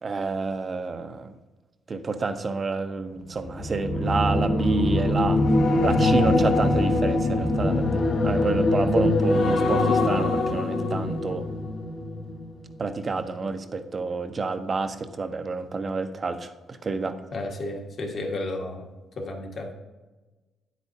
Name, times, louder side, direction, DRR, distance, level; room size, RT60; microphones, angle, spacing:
voice 1, 0.0-1.3 1.9-5.4 5.8-11.4 12.8-16.5 16.8-17.1, right 4 dB, 35° right, 10 dB, 0.7 m, -28 dB
sound 1, 3.4-12.8 13.1-13.4, left 2 dB, 65° left, 1.5 m, -23 dB
voice 2, 17.3-18.8 19.2-19.7, left 2 dB, 50° left, 1 dB, 1.6 m, -32 dB
9.4 x 8.3 x 2.7 m, 1.2 s
cardioid pair, 90°, 0 cm